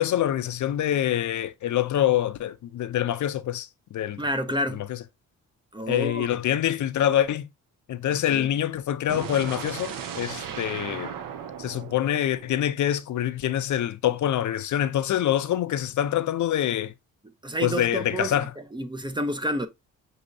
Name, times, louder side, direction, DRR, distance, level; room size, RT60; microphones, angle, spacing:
voice 1, 0.0-4.2 5.9-7.5 7.9-11.1 11.6-16.9 17.6-18.5, left 11 dB, 65° left, 0.5 m, -25 dB
voice 2, 4.2-4.8 5.7-6.3 8.3-8.5 17.4-19.7, equal, 15° right, 0.6 m, -29 dB
sound 1, 9.1-13.1, right 8 dB, 85° right, 0.7 m, -37 dB
6.1 x 2.8 x 2.6 m
cardioid pair, 90°, 33 cm